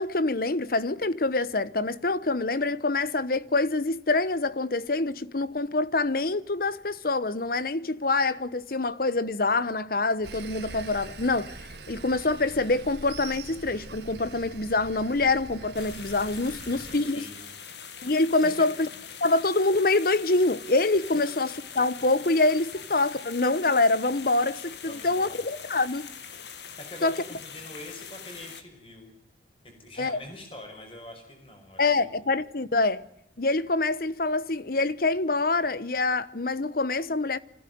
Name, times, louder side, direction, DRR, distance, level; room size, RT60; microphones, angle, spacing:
voice 1, 0.0-11.5 11.9-17.2 18.0-18.9 19.2-26.1 27.0-27.2 30.0-30.2 31.8-33.0 33.4-37.4, left 2 dB, 50° left, 1.0 m, -25 dB
Sawing, 10.2-17.0, right 3 dB, 70° right, 2.0 m, -43 dB
sound 1, 15.7-28.6, left 7 dB, 70° left, 2.0 m, -43 dB
voice 2, 16.6-17.7 18.4-18.7 21.1-21.2 24.8-25.4 26.8-29.1 29.6-32.1, left 1 dB, 30° left, 5.6 m, -44 dB
25.5 x 16.0 x 9.4 m
head